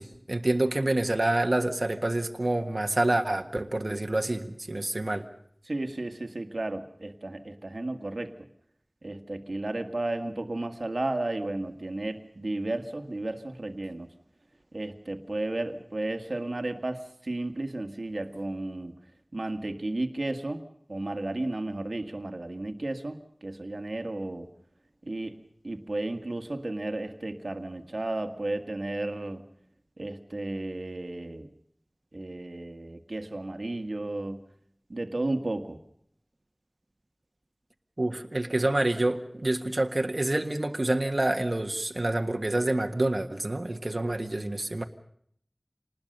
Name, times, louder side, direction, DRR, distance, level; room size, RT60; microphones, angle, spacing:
voice 1, 0.0-5.2 38.0-44.8, right 1 dB, 55° right, 4 dB, 1.6 m, -27 dB
voice 2, 5.6-8.3 9.0-14.1 14.7-18.9 19.3-20.6 20.9-24.5 25.0-29.4 30.0-31.5 32.1-34.4 34.9-35.8, right 2 dB, 80° right, 7 dB, 1.9 m, -33 dB
27.0 x 20.0 x 6.8 m, 0.66 s
wide cardioid pair, 45°, 0 cm